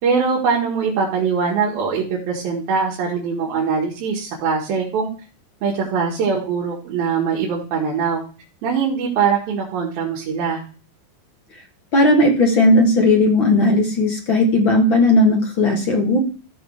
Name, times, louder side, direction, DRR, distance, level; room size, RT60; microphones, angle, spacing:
voice 1, 0.0-5.1 5.6-8.2 8.6-10.6, right 5 dB, 75° right, -3 dB, 3.6 m, -22 dB
voice 2, 11.9-16.2, left 1 dB, 45° left, 1 dB, 1.9 m, -16 dB
15.0 x 5.3 x 4.7 m, 0.38 s
omnidirectional pair, 4.4 m